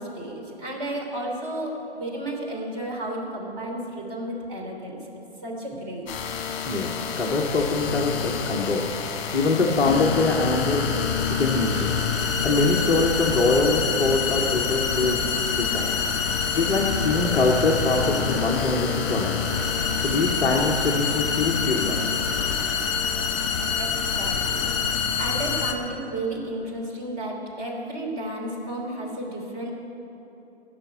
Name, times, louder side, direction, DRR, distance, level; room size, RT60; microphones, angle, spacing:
voice 1, 0.0-5.0 5.4-6.1 23.8-24.6 25.2-29.7, right 1 dB, 35° right, -1 dB, 3.1 m, -32 dB
sound 1, 6.1-25.7, left 6 dB, 30° left, 1.2 m, -26 dB
voice 2, 6.7-9.0 9.3-11.0 11.3-12.0 12.4-15.3 15.6-15.9 16.5-19.5 20.0-22.0, left 3 dB, 5° left, -5 dB, 0.5 m, -23 dB
15.5 x 6.1 x 9.4 m, 3.0 s
figure-of-eight pair, 130°, 33 cm